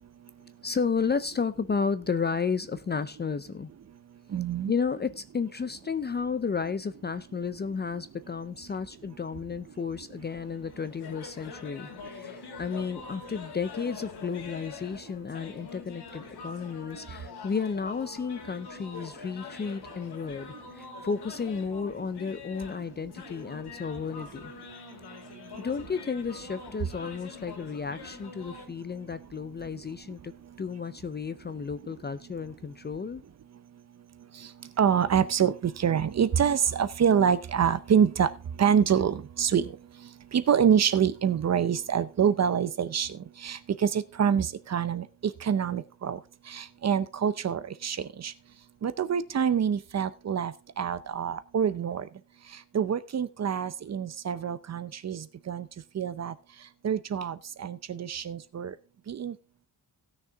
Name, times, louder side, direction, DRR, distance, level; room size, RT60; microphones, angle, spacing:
voice 1, 0.6-3.7 4.7-24.5 25.6-30.3 30.6-33.2, left 5 dB, 25° left, 0.4 m, -32 dB
voice 2, 4.3-4.7 34.8-38.3 38.6-39.7 40.3-43.2 43.4-46.2 46.5-48.3 48.8-52.1 52.7-55.7 55.9-56.3 56.8-58.7 59.1-59.3, right 8 dB, 40° right, 0.7 m, -26 dB
sound 1, 10.2-28.7, left 6 dB, 75° left, 2.2 m, -45 dB
17.0 x 6.6 x 3.4 m
wide cardioid pair, 175°, 40 cm